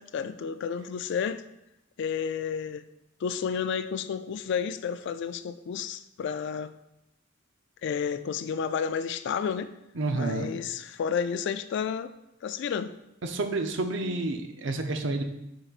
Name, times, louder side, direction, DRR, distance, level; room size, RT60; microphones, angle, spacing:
voice 1, 0.0-1.4 2.0-2.8 3.2-6.7 7.8-9.7 10.1-12.1 12.4-12.9, left 7 dB, 65° left, 0.3 m, -31 dB
voice 2, 9.9-10.5 13.2-15.2, right 2 dB, 65° right, 0.6 m, -29 dB
10.0 x 3.9 x 2.4 m
head